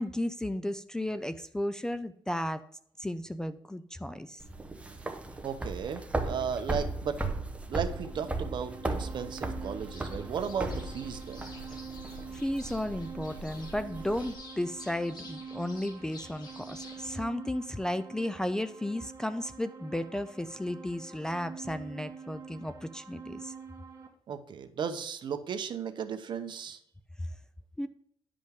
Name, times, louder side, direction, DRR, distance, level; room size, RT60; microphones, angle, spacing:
voice 1, 0.0-2.6 3.0-4.4 12.3-23.5 27.2-27.3 27.8-27.9, left 1 dB, 5° left, 11 dB, 0.4 m, -34 dB
sound 1, 4.4-14.3, right 2 dB, 15° right, 0.8 m, -37 dB
voice 2, 5.4-7.2 7.7-11.5 24.3-26.8, right 7 dB, 60° right, 8 dB, 0.9 m, -35 dB
sound 2, 7.8-24.1, right 5 dB, 35° right, 1.7 m, -47 dB
sound 3, 9.9-17.2, left 2 dB, 50° left, 2.4 m, -51 dB
10.5 x 5.1 x 3.7 m, 0.68 s
cardioid pair, 120°, 9 cm